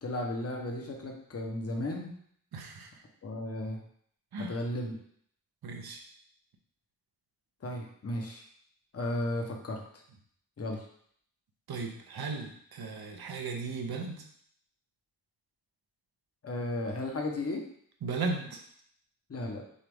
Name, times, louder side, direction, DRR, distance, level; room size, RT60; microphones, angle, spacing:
voice 1, 0.0-2.1 3.2-3.8 4.4-5.0 7.6-8.4 8.9-9.8 10.6-10.9 16.4-17.6 19.3-19.6, left 1 dB, 40° left, 1 dB, 0.9 m, -34 dB
voice 2, 2.5-2.9 4.3-4.5 5.6-6.0 11.7-14.2 18.0-18.6, right 4 dB, 75° right, 2 dB, 0.8 m, -36 dB
6.4 x 2.4 x 3.5 m, 0.65 s
wide cardioid pair, 125°, 37 cm